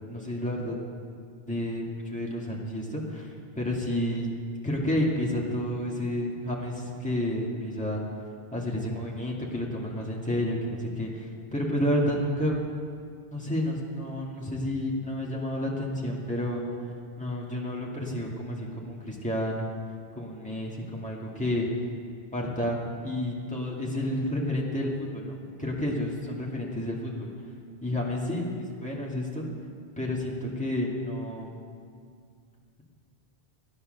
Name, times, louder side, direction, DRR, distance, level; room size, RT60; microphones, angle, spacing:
voice 1, 0.1-0.8 1.5-3.3 3.6-4.3 4.6-8.0 8.5-12.6 13.3-16.6 17.2-19.7 20.2-21.7 22.3-27.3 27.8-29.5 30.0-31.5, left 1 dB, 5° left, -4 dB, 2.1 m, -30 dB
13.5 x 10.0 x 6.5 m, 2.2 s
omnidirectional pair, 1.0 m